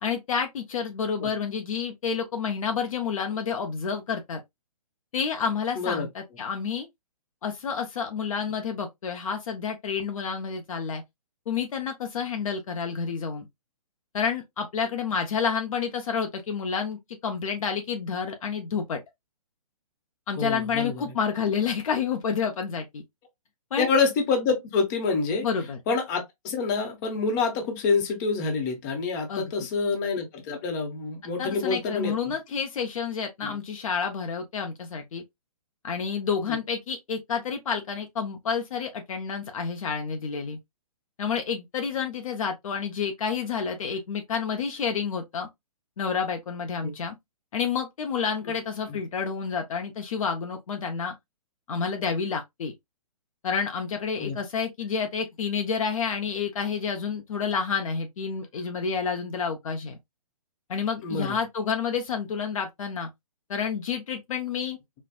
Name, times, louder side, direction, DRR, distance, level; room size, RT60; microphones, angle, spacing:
voice 1, 0.0-4.4 5.1-6.9 7.4-11.0 11.5-13.5 14.1-19.0 20.3-23.0 23.7-23.9 25.4-25.8 29.3-29.5 31.4-35.2 35.8-40.6 41.2-45.5 46.0-47.1 47.5-51.1 51.7-52.7 53.4-60.0 60.7-63.1 63.5-64.8, left 6 dB, 60° left, 0.7 m, -29 dB
voice 2, 5.7-6.1 20.4-21.0 23.8-25.5 25.9-32.3 33.5-33.6 36.5-36.6 46.8-46.9 48.9-49.0 54.2-54.4 61.0-61.4, left 4 dB, 30° left, 0.9 m, -27 dB
4.3 x 2.2 x 2.2 m
hypercardioid pair, 150°, 19 cm